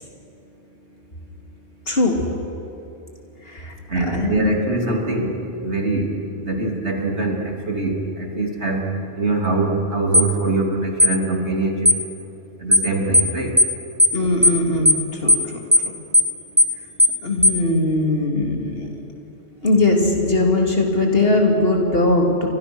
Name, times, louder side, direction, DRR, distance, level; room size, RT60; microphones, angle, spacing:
voice 1, 1.9-2.2 3.5-3.7 4.1-4.5 14.1-15.4 17.2-18.9 19.6-22.5, left 2 dB, 55° left, 1 dB, 3.2 m, -19 dB
voice 2, 3.9-5.3 5.6-8.8 9.2-11.9 12.6-13.5, right 2 dB, 70° right, 1 dB, 3.3 m, -23 dB
sound 1, 10.1-10.3 11.0-11.2 11.9-12.0 12.7-12.9 13.1-13.3 13.6-13.7 14.0-14.2 14.4-14.6 14.9-15.0 15.3-15.4 15.7-15.9 16.1-16.3 16.6-16.7 17.0-17.2 17.4-17.6, left 1 dB, 5° right, 1.2 m, -14 dB
29.0 x 25.0 x 6.3 m, 2.8 s
omnidirectional pair, 1.2 m